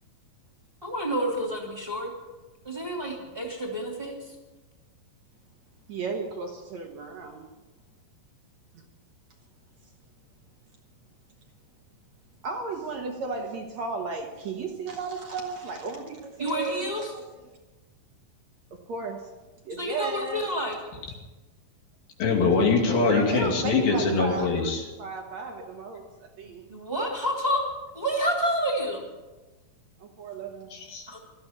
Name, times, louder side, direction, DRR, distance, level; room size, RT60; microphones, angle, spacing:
voice 1, 0.8-2.1 2.6-4.2 16.4-17.1 19.8-20.8 26.4-27.6 27.9-29.1 31.1-31.2, equal, 15° right, 0 dB, 2.5 m, -29 dB
voice 2, 5.9-7.4 12.4-17.5 18.7-19.3 19.6-20.4 23.1-26.6 30.0-30.7, right 3 dB, 60° right, 2 dB, 2.2 m, -34 dB
voice 3, 22.2-24.8 30.7-31.0, left 4 dB, 75° left, 1 dB, 4.3 m, -23 dB
18.0 x 13.5 x 5.9 m, 1.2 s
omnidirectional pair, 4.2 m